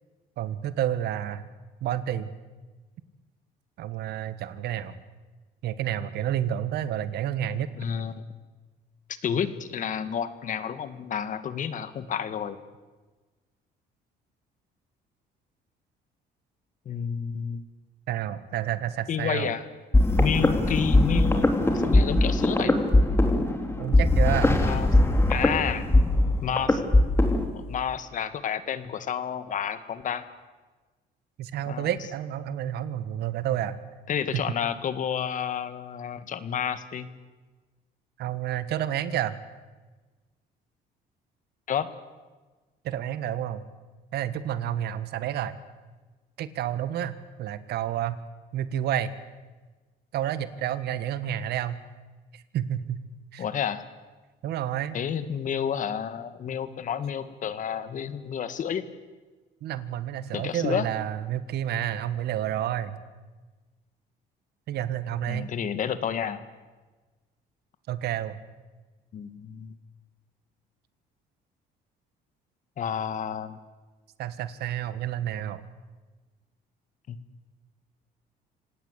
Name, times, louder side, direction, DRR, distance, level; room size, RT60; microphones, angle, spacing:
voice 1, 0.4-1.4 1.8-2.3 3.8-5.0 5.6-7.7 18.1-19.5 23.8-24.6 31.4-33.8 34.3-34.4 38.2-39.4 42.8-43.6 44.1-45.6 46.4-48.2 48.5-49.1 50.1-51.8 52.3-53.0 53.3-53.4 54.4-55.0 59.6-63.0 64.7-65.5 67.9-68.4 74.2-75.6, right 11 dB, 70° right, 14 dB, 1.6 m, -30 dB
voice 2, 7.8-8.2 9.2-12.6 16.9-17.6 19.1-19.7 20.2-21.5 21.8-22.8 24.6-24.9 25.3-25.9 26.4-27.0 27.5-30.2 31.6-31.9 34.1-37.1 41.7-41.9 53.4-53.8 54.9-58.9 60.3-60.9 65.3-66.4 69.1-69.8 72.8-73.6 77.1-77.2, left 8 dB, 50° left, 12 dB, 1.8 m, -30 dB
sound 1, 19.9-27.5, left 2 dB, 15° left, 3.1 m, -21 dB
26.5 x 18.0 x 8.3 m, 1.3 s
cardioid pair, 110°, 17 cm